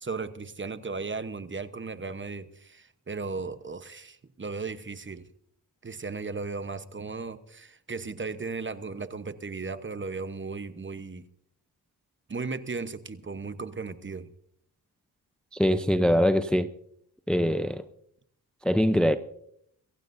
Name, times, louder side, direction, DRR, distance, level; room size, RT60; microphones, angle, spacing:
voice 1, 0.0-5.3 5.8-11.3 12.3-14.3, right 4 dB, 30° right, 11 dB, 1.0 m, -36 dB
voice 2, 15.5-16.7 17.3-17.8 18.6-19.2, equal, ahead, 10 dB, 0.6 m, -23 dB
23.0 x 15.0 x 2.7 m, 0.69 s
cardioid pair, 70°, 40 cm